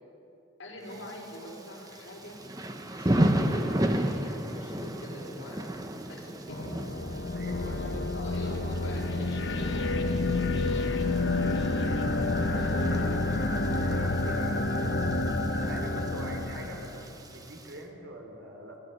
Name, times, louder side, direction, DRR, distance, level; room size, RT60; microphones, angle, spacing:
voice 1, 0.6-2.4 2.9-5.7 6.1-6.6 7.8-11.1, left 1 dB, 85° left, -2 dB, 5.2 m, -44 dB
Thunder / Rain, 0.9-17.8, right 1 dB, 20° right, 1.2 m, -34 dB
sound 1, 6.5-17.0, left 2 dB, 60° left, 1.5 m, -29 dB
voice 2, 7.2-8.0 12.5-14.7 15.4-18.8, right 1 dB, 70° right, 2 dB, 3.5 m, -44 dB
24.5 x 17.0 x 6.9 m, 2.8 s
head